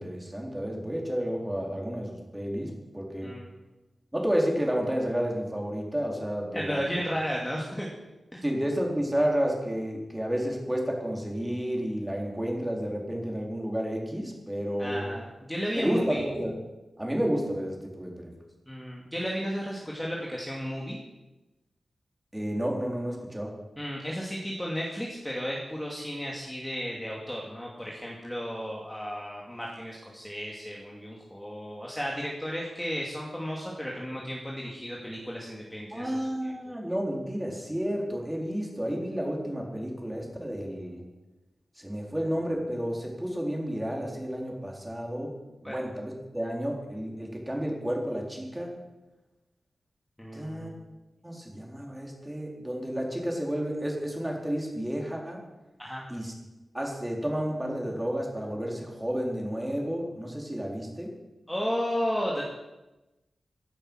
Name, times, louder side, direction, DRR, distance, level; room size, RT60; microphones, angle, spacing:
voice 1, 0.0-3.3 4.1-6.8 8.4-15.1 15.8-16.5 17.0-18.3 22.3-23.5 35.9-41.0 41.8-45.3 45.6-48.7 50.3-50.7 51.2-55.4 56.1-56.3 56.7-61.1, equal, 10° right, -1 dB, 4.0 m, -31 dB
voice 2, 6.5-7.9 8.3-8.4 14.8-16.2 18.7-21.0 23.8-36.5 45.6-45.8 50.2-50.7 55.8-56.0 61.5-62.4, equal, 5° left, -3 dB, 2.5 m, -34 dB
16.5 x 11.0 x 6.3 m, 1.0 s
wide cardioid pair, 100°, 0 cm